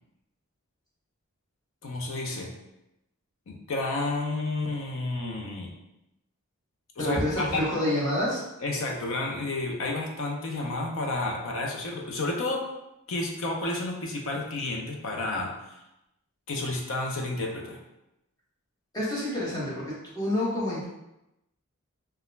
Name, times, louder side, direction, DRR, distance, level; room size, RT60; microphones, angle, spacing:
voice 1, 1.8-2.5 3.5-5.7 7.0-7.6 8.6-12.7 13.1-15.8 16.5-17.8, left 2 dB, 60° left, 1 dB, 0.5 m, -31 dB
voice 2, 7.0-8.4 18.9-20.8, left 1 dB, 15° left, -8 dB, 0.8 m, -28 dB
2.3 x 2.1 x 3.0 m, 0.90 s
head